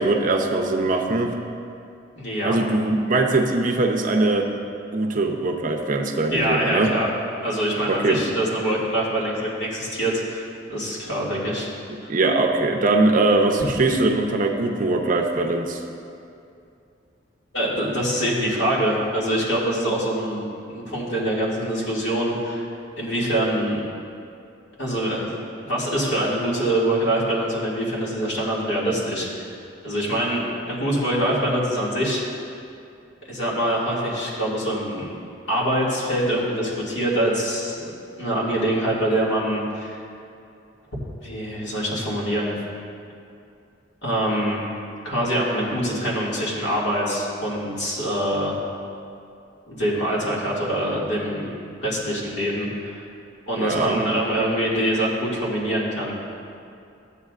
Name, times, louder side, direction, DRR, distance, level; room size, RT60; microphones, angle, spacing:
voice 1, 0.0-1.3 2.4-4.5 4.9-6.9 7.9-8.2 12.1-15.8 53.6-54.0, right 2 dB, 45° right, 2 dB, 0.6 m, -21 dB
voice 2, 2.2-2.6 6.3-7.1 7.4-11.7 12.0-12.1 17.5-22.6 23.0-23.8 24.8-25.3 25.6-29.5 29.8-32.2 33.3-35.1 35.5-37.8 38.2-40.0 41.2-42.5 44.0-44.6 45.0-48.5 49.7-51.5 51.8-53.1 53.5-56.1, right 1 dB, 65° left, -6 dB, 2.2 m, -24 dB
13.5 x 8.3 x 2.4 m, 2.5 s
head